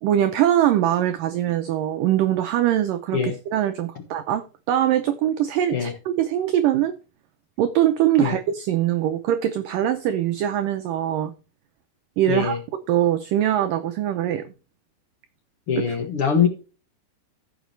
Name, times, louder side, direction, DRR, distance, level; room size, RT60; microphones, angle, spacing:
voice 1, 0.0-6.9 7.6-11.3 12.2-12.6 12.9-14.5 15.8-16.0, right 11 dB, 90° right, 1.9 m, -22 dB
voice 2, 12.3-12.6 15.7-16.5, left 7 dB, 75° left, 1.3 m, -22 dB
14.5 x 7.3 x 3.3 m
omnidirectional pair, 4.9 m